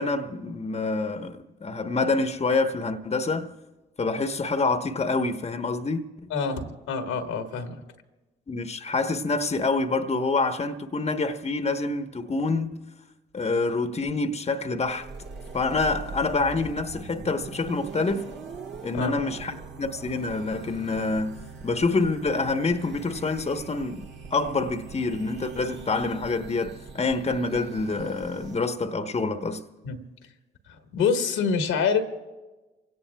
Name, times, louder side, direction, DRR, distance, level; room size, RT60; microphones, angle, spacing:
voice 1, 0.0-3.5 4.0-6.3 8.5-12.8 13.3-15.1 15.5-18.3 18.8-21.4 21.6-24.0 24.3-29.6, left 3 dB, 30° left, 1.0 m, -27 dB
voice 2, 6.3-7.7 18.9-19.1 29.8-30.0 30.9-32.0, left 5 dB, 80° left, 1.5 m, -26 dB
sound 1, 14.8-28.5, right 4 dB, 60° right, 1.4 m, -42 dB
29.0 x 17.0 x 2.3 m
hypercardioid pair, 45°, 21 cm